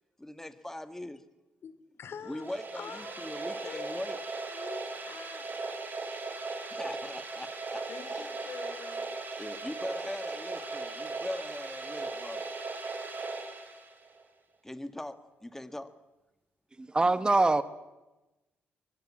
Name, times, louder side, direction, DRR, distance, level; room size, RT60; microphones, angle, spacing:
voice 1, 0.2-1.2 2.2-4.2 6.7-8.3 9.3-12.4 14.6-15.9, left 1 dB, 10° left, 11 dB, 1.6 m, -41 dB
voice 2, 2.0-5.6 7.9-9.0, left 6 dB, 60° left, 12 dB, 2.7 m, -46 dB
sound 1, 2.3-14.2, right 3 dB, 40° right, 4.6 m, -38 dB
voice 3, 16.8-17.6, right 2 dB, 20° right, 13 dB, 1.1 m, -24 dB
23.5 x 21.0 x 8.6 m, 1.1 s
cardioid pair, 85°, 5 cm